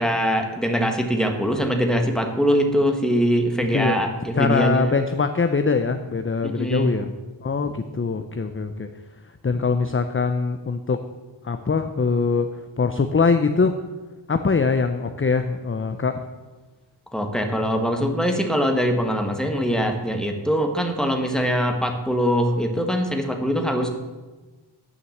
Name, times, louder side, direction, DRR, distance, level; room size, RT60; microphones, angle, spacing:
voice 1, 0.0-4.9 6.4-7.0 9.5-9.6 17.1-23.9, equal, ahead, 3 dB, 1.4 m, -22 dB
voice 2, 4.4-7.1 7.4-8.9 9.4-11.0 11.4-12.5 12.8-13.8 14.3-16.2, left 4 dB, 25° left, 8 dB, 0.5 m, -22 dB
9.5 x 5.8 x 7.1 m, 1.2 s
wide cardioid pair, 50°, 48 cm